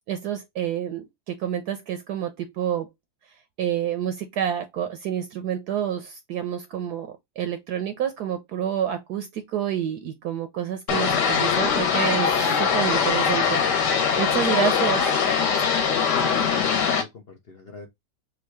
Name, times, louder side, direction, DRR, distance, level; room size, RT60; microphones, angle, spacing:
voice 1, 0.1-2.9 3.6-12.3 12.6-15.0, right 9 dB, 70° right, 1.0 m, -28 dB
sound 1, 10.9-17.0, left 6 dB, 65° left, 1.5 m, -22 dB
voice 2, 16.0-17.9, left 3 dB, 80° left, 0.5 m, -39 dB
3.7 x 2.3 x 4.4 m
omnidirectional pair, 2.1 m